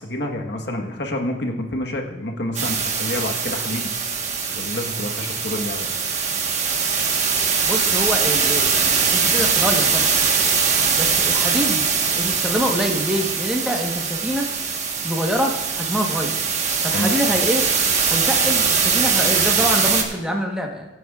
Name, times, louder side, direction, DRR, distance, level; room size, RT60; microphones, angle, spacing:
voice 1, 0.0-4.0 4.5-5.9 16.9-17.2, left 1 dB, 65° left, 2 dB, 1.3 m, -28 dB
sound 1, 2.5-20.0, right 6 dB, 40° right, 1.3 m, -21 dB
voice 2, 7.7-10.2 10.9-11.9 12.1-14.5 15.0-16.3 16.8-17.6 18.1-20.9, equal, 5° right, 1 dB, 1.1 m, -25 dB
22.0 x 9.3 x 2.4 m, 1.2 s
head